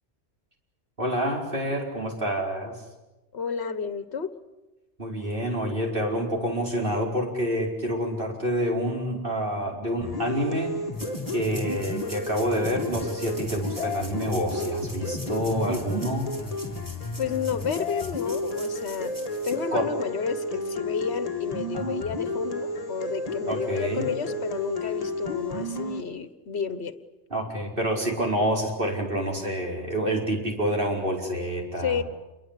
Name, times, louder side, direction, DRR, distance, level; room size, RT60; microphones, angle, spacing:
voice 1, 1.0-2.8 5.0-10.8 11.3-16.3 19.7-19.9 21.7-22.0 23.5-24.1 27.3-32.0, equal, 50° right, 5.2 m, -28 dB
voice 2, 3.3-4.3 17.2-19.1 19.4-27.0 31.8-32.0, left 6 dB, 65° left, 1.5 m, -31 dB
sound 1, 10.0-26.0, left 2 dB, 35° left, 1.8 m, -32 dB
sound 2, 10.9-19.5, equal, 15° right, 6.0 m, -45 dB
28.0 x 23.0 x 8.4 m
omnidirectional pair, 1.2 m